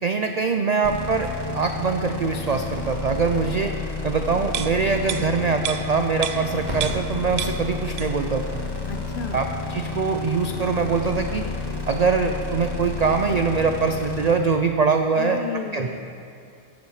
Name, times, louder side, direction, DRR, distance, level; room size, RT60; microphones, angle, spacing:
voice 1, 0.0-3.7 4.0-8.6 9.3-11.5 11.9-15.4 15.7-15.9, right 5 dB, 60° right, 5 dB, 0.4 m, -23 dB
sound 1, 0.8-14.3, left 4 dB, 20° left, 0.9 m, -31 dB
sound 2, 4.5-7.1 7.4-8.3 8.7-8.8, right 9 dB, 75° right, 0.9 m, -32 dB
Crackle, 5.9-12.4, equal, 35° right, 2.7 m, -40 dB
voice 2, 8.9-9.4 15.2-16.2, left 6 dB, 55° left, 7 dB, 0.7 m, -33 dB
14.0 x 8.4 x 4.9 m, 2.6 s
omnidirectional pair, 1.3 m